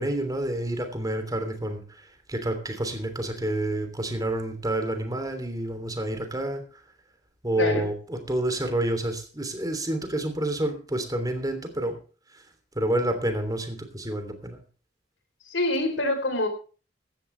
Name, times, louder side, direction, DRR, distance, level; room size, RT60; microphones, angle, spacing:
voice 1, 0.0-6.6 7.4-12.0 12.7-14.6, right 1 dB, 20° right, 3.2 m, -29 dB
voice 2, 7.6-7.9 15.5-16.5, left 1 dB, 75° left, 4.0 m, -25 dB
16.5 x 13.0 x 3.4 m
head